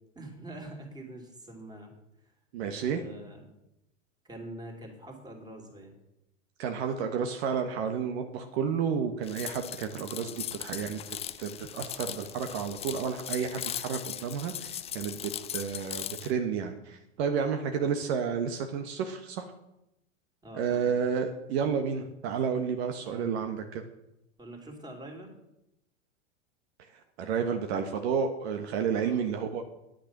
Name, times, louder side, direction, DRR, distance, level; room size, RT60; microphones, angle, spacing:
voice 1, 0.1-2.3 2.7-3.5 4.2-5.9 10.2-10.5 20.4-21.0 23.1-23.4 24.4-25.4 29.0-29.3, right 1 dB, 10° right, 1 dB, 3.1 m, -45 dB
voice 2, 2.5-3.0 6.6-10.3 10.6-19.5 20.5-23.8 27.2-29.6, right 6 dB, 60° right, 6 dB, 1.3 m, -31 dB
sound 1, 9.2-16.3, left 10 dB, 15° left, 0.4 m, -39 dB
10.0 x 9.1 x 6.0 m, 0.87 s
hypercardioid pair, 110°, 36 cm